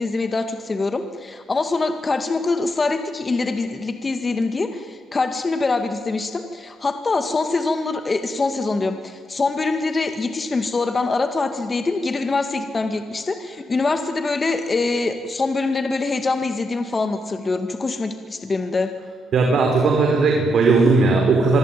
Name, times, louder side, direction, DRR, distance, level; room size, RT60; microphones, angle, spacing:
voice 1, 0.0-18.9, left 3 dB, 30° left, 7 dB, 2.1 m, -24 dB
voice 2, 19.3-21.6, right 3 dB, 65° right, 1 dB, 5.0 m, -17 dB
25.5 x 24.0 x 9.4 m, 2.1 s
cardioid pair, 90°, 0 cm